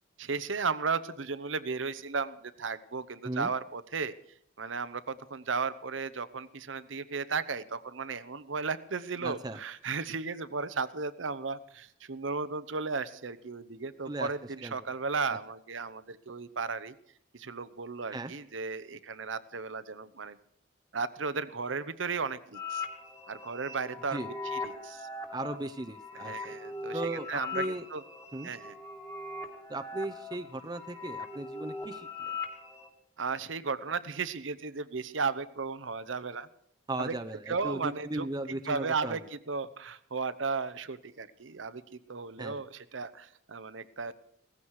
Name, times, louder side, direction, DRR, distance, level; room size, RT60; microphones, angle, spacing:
voice 1, 0.2-4.1 4.6-16.9 17.3-20.4 20.9-22.8 23.3-25.1 26.1-28.0 28.4-28.8 33.2-36.5 37.0-37.1 37.5-44.1, right 4 dB, 85° right, 14 dB, 0.9 m, -35 dB
voice 2, 9.2-9.6 14.1-14.3 14.6-14.7 18.1-18.3 24.1-24.3 25.3-26.5 26.9-27.8 28.3-28.5 29.7-32.3 36.9-37.4 37.6-39.2 42.4-42.6, right 2 dB, 20° right, 7 dB, 0.7 m, -37 dB
sound 1, 22.5-32.9, left 4 dB, 20° left, 2.4 m, -40 dB
17.5 x 14.5 x 4.8 m, 0.68 s
head